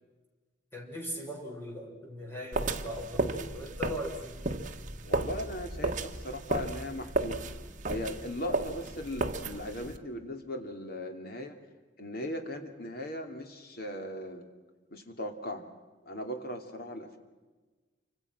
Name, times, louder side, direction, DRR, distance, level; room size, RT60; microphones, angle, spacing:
voice 1, 0.7-4.4, equal, 15° left, -1 dB, 6.2 m, -39 dB
sound 1, 2.5-10.0, right 2 dB, 45° right, 1.5 m, -34 dB
voice 2, 5.0-7.5 7.9-11.6 12.0-14.5 14.9-15.7 16.0-17.2, left 1 dB, 55° left, 5 dB, 2.8 m, -38 dB
28.5 x 25.5 x 6.1 m, 1.3 s
head